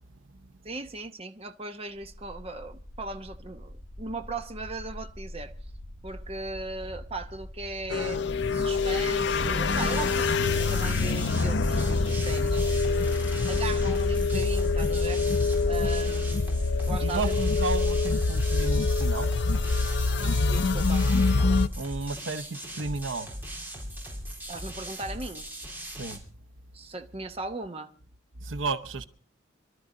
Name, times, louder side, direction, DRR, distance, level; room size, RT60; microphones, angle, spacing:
voice 1, 0.6-5.5 6.0-8.2 8.5-13.2 13.5-15.2 15.6-17.4 20.2-21.0 24.5-25.4 26.7-27.9, right 3 dB, 30° right, 1.0 m, -38 dB
sound 1, 1.9-21.6, equal, 25° left, 6.7 m, -41 dB
sound 2, 7.9-21.7, left 3 dB, 60° left, 0.6 m, -25 dB
sound 3, 9.7-26.2, right 1 dB, 10° right, 3.1 m, -39 dB
voice 2, 17.0-19.3 21.7-23.3 25.9-26.2 28.4-29.0, right 3 dB, 75° right, 0.9 m, -33 dB
24.5 x 13.0 x 3.8 m
head